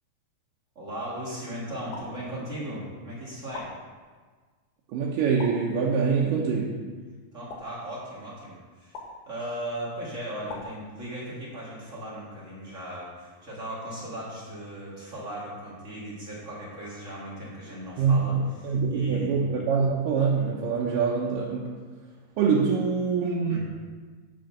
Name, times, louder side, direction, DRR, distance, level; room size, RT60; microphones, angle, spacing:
voice 1, 0.7-3.7 7.3-19.4 23.5-23.6, right 1 dB, 30° right, -6 dB, 1.7 m, -37 dB
sound 1, 1.9-2.8 3.5-4.4 5.4-6.2 7.5-8.4 8.9-9.7 10.5-11.5, left 3 dB, 85° left, 3.0 m, -44 dB
voice 2, 4.9-6.7 18.0-21.7 22.4-23.6, right 5 dB, 75° right, -4 dB, 2.5 m, -24 dB
7.8 x 6.4 x 5.9 m, 1.5 s
omnidirectional pair, 3.9 m